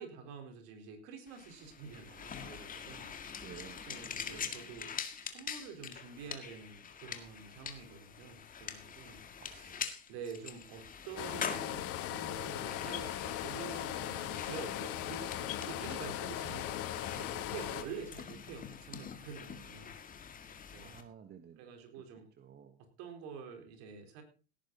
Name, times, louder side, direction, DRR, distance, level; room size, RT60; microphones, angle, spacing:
voice 1, 0.0-3.2 3.8-4.9 5.2-9.8 10.1-16.8 17.1-20.0 20.7-21.0 21.6-22.3 23.0-24.2, right 6 dB, 60° right, 5 dB, 4.3 m, -48 dB
sound 1, 1.3-21.0, left 7 dB, 25° left, 2.0 m, -45 dB
voice 2, 3.4-3.9 4.3-4.7 9.4-10.0 20.8-21.7 22.4-22.8, right 8 dB, 30° right, 8 dB, 1.5 m, -53 dB
sound 2, 11.2-17.8, left 12 dB, 45° left, 1.6 m, -38 dB
17.5 x 10.0 x 4.1 m, 0.35 s
hypercardioid pair, 95°, 32 cm